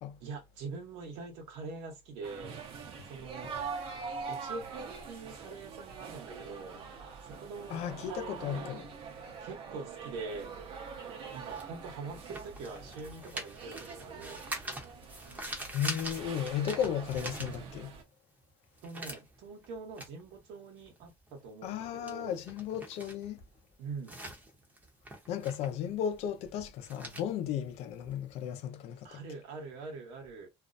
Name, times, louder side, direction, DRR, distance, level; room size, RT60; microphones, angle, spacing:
voice 1, 0.2-2.6 3.0-3.6 4.3-6.9 7.2-8.8 9.4-10.6 11.3-14.4 18.8-22.4 23.8-24.2 29.0-30.5, right 4 dB, 75° right, 1.0 m, -44 dB
sound 1, 2.2-18.0, right 5 dB, 50° right, 0.7 m, -44 dB
voice 2, 7.7-8.9 15.7-17.9 21.6-23.4 25.3-29.2, left 9 dB, 65° left, 0.6 m, -35 dB
sound 2, 10.3-18.1 18.4-28.5, right 1 dB, 15° right, 0.7 m, -45 dB
2.5 x 2.0 x 2.5 m
cardioid pair, 125°, 12 cm